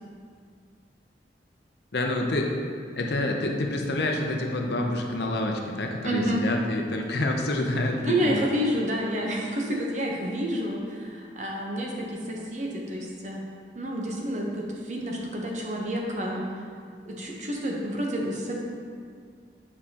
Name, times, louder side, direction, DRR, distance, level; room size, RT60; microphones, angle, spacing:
voice 1, 1.9-2.5 3.0-8.4, left 2 dB, 70° left, 2 dB, 0.7 m, -27 dB
voice 2, 6.0-6.4 8.0-13.4 13.7-16.5 17.1-18.6, equal, 40° right, -1 dB, 0.9 m, -29 dB
8.8 x 4.8 x 2.9 m, 2.2 s
head